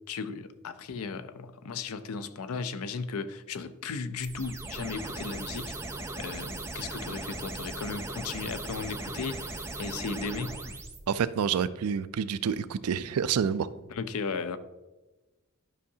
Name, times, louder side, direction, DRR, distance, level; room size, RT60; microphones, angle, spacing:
voice 1, 0.1-5.8 6.2-10.6 13.9-14.6, left 4 dB, 70° left, 11 dB, 0.5 m, -36 dB
sound 1, 4.2-11.0, right 2 dB, 10° right, 0.6 m, -38 dB
voice 2, 11.1-13.7, right 7 dB, 75° right, 15 dB, 0.4 m, -28 dB
11.0 x 5.6 x 2.8 m, 1.1 s
head